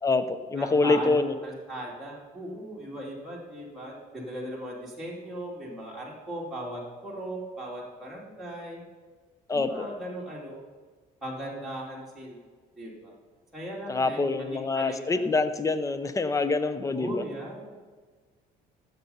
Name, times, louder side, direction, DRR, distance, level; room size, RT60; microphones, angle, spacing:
voice 1, 0.0-1.3 9.5-9.9 13.9-17.2, left 3 dB, 20° left, 11 dB, 0.7 m, -26 dB
voice 2, 0.6-8.8 9.5-10.6 11.2-12.4 12.8-13.1 13.5-15.3 17.0-17.7, right 1 dB, ahead, -5 dB, 2.6 m, -38 dB
15.0 x 6.8 x 5.6 m, 1.5 s
cardioid pair, 110°, 17 cm